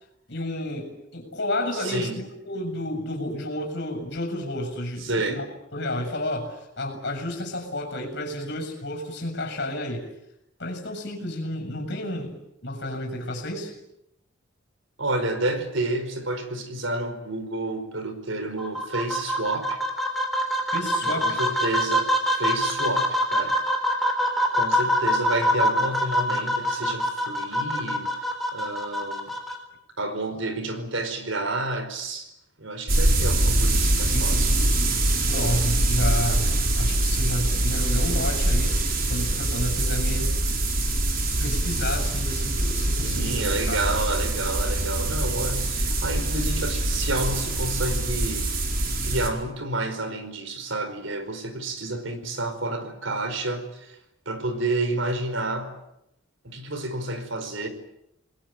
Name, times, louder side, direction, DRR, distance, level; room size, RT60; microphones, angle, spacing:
voice 1, 0.3-5.5 5.7-10.0 10.6-13.7 20.7-21.4 34.1-34.4 35.3-36.5 36.8-40.3 41.4-43.4 43.7-43.8, left 1 dB, 60° left, 7.3 m, -31 dB
voice 2, 1.7-2.2 5.0-5.4 15.0-19.8 21.0-23.6 24.5-28.1 28.5-29.3 30.0-32.3 32.6-34.5 43.0-48.5 49.0-54.0 54.2-55.7 56.4-57.7, right 2 dB, 70° right, 4.9 m, -30 dB
sound 1, 18.6-29.6, equal, ahead, 4.0 m, -25 dB
sound 2, 32.9-49.3, right 1 dB, 45° right, 4.7 m, -24 dB
28.0 x 21.0 x 9.0 m
head